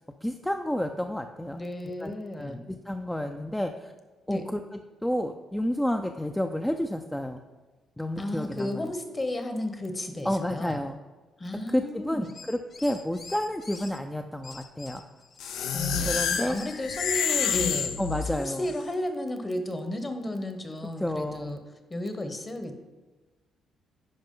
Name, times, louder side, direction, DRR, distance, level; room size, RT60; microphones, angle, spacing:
voice 1, 0.2-3.9 4.3-4.6 5.0-7.4 8.0-8.9 10.2-11.0 11.7-15.0 16.0-16.6 18.0-18.7 21.0-21.6, left 1 dB, 5° left, 5 dB, 0.4 m, -30 dB
voice 2, 1.5-2.6 4.3-4.4 8.2-10.8 11.4-12.3 15.7-21.6 21.9-22.8, left 1 dB, 25° left, 7 dB, 1.0 m, -33 dB
sound 1, 12.2-14.0 14.4-17.8, left 4 dB, 45° left, 0.7 m, -46 dB
sound 2, 15.4-18.7, left 7 dB, 80° left, 0.5 m, -28 dB
10.5 x 5.0 x 3.8 m, 1.2 s
cardioid pair, 90°, 0 cm